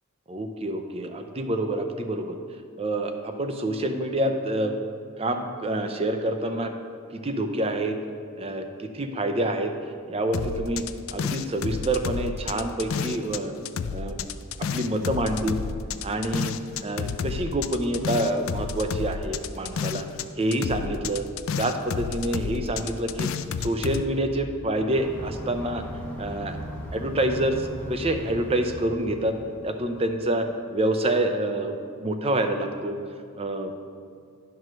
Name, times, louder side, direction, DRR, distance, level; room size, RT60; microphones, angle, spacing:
voice 1, 0.3-2.4 2.8-4.7 5.2-6.7 7.1-7.9 8.4-9.7 10.1-10.8 11.1-13.5 13.9-14.3 14.6-15.6 16.0-16.5 16.8-20.1 20.4-21.3 21.6-23.3 23.6-25.8 26.2-26.6 26.9-29.3 29.6-31.7 32.0-33.0 33.4-33.7, right 1 dB, 30° right, 6 dB, 0.6 m, -27 dB
sound 1, 10.3-13.4 13.7-20.3 20.5-24.0, left 6 dB, 75° left, 0.4 m, -30 dB
sound 2, 24.9-30.4, equal, 10° left, 1.2 m, -38 dB
10.5 x 4.7 x 6.2 m, 2.3 s
head